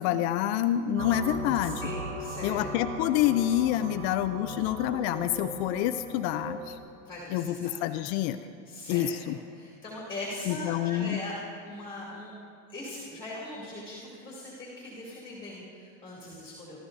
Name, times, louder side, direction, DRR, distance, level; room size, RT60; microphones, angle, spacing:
voice 1, 0.0-1.8 2.4-6.8 7.3-8.4 8.9-9.4 10.5-11.2, left 12 dB, 55° left, 10 dB, 0.6 m, -27 dB
sound 1, 1.0-6.8, right 1 dB, 70° right, 2.1 m, -38 dB
voice 2, 1.6-2.6 7.0-7.7 8.7-11.4 11.6-12.3 12.7-16.8, left 2 dB, 10° left, -6 dB, 3.0 m, -40 dB
23.0 x 14.0 x 2.7 m, 2.6 s
supercardioid pair, 135°, 40 cm